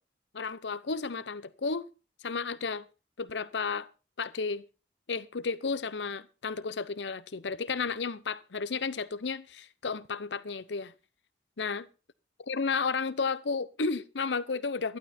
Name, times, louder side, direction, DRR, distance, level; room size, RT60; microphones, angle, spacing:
voice 1, 0.3-1.9 2.2-2.9 3.2-3.9 4.2-4.6 5.1-10.9 11.6-11.8 12.4-15.0, left 4 dB, 90° left, 0.8 m, -32 dB
11.5 x 11.5 x 4.3 m
head